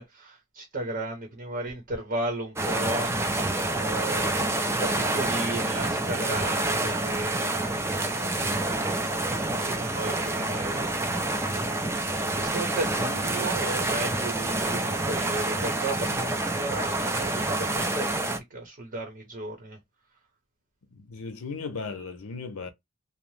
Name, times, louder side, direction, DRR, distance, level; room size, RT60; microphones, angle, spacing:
voice 1, 0.0-3.1 3.7-7.5 8.3-8.8 9.5-11.7 12.3-19.8, right 2 dB, 45° right, 0.8 m, -35 dB
sound 1, 2.6-18.4, right 2 dB, 10° right, 0.4 m, -28 dB
voice 2, 20.9-22.7, left 4 dB, 70° left, 0.6 m, -36 dB
2.8 x 2.0 x 3.1 m
head